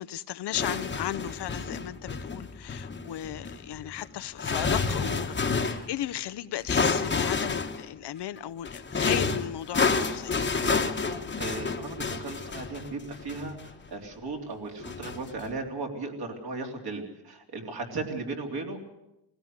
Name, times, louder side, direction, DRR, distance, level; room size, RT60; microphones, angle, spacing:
voice 1, 0.0-10.4 12.1-12.2, left 12 dB, 65° left, 0.7 m, -35 dB
sound 1, 0.5-5.9 6.7-7.9 8.7-13.9 14.8-15.6, left 4 dB, 25° left, 1.2 m, -29 dB
voice 2, 10.6-18.8, right 3 dB, 55° right, 3.6 m, -37 dB
19.5 x 17.0 x 8.1 m
cardioid pair, 120°, 43 cm